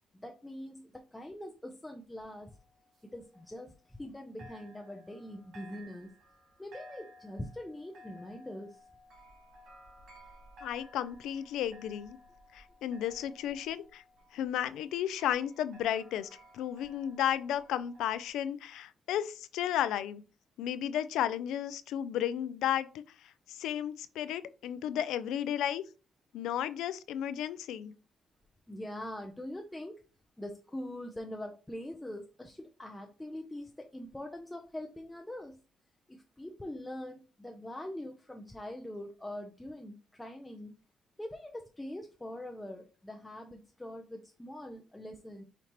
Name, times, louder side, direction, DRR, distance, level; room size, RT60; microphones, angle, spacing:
voice 1, 0.1-2.5 3.0-6.1 6.6-8.8 28.7-30.0 30.4-35.6 36.1-40.7 41.2-45.4, left 1 dB, 10° left, 0.5 m, -43 dB
sound 1, 2.2-4.1 4.4-18.3, left 1 dB, 75° right, 1.9 m, -56 dB
voice 2, 10.6-12.2 12.5-14.0 14.3-20.2 20.6-22.9 23.5-25.8 26.3-27.9, left 10 dB, 85° left, 0.3 m, -33 dB
5.1 x 2.8 x 2.9 m
cardioid pair, 90°, 0 cm